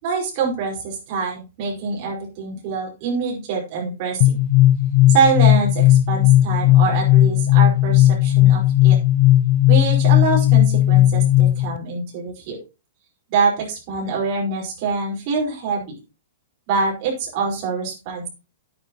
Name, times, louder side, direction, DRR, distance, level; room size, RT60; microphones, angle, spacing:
voice 1, 0.0-4.4 5.1-9.0 9.7-12.6 13.3-16.0 16.7-18.3, right 5 dB, 35° right, -2 dB, 4.7 m, -24 dB
sound 1, 4.2-11.8, left 14 dB, 40° left, 0.4 m, -15 dB
10.5 x 9.3 x 3.0 m, 0.28 s
hypercardioid pair, 170°, 0 cm